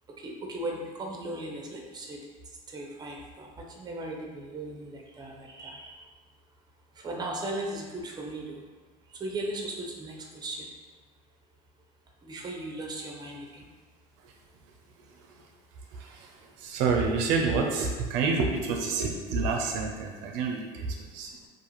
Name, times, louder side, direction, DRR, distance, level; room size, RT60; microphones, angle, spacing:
voice 1, 0.2-2.2 2.7-6.0 7.0-8.6 9.2-10.7 12.2-13.7, right 1 dB, 20° right, 0 dB, 0.5 m, -37 dB
voice 2, 15.1-15.4 15.9-21.3, right 4 dB, 75° right, 1 dB, 0.4 m, -29 dB
2.4 x 2.4 x 2.9 m, 1.4 s
supercardioid pair, 90°, 18 cm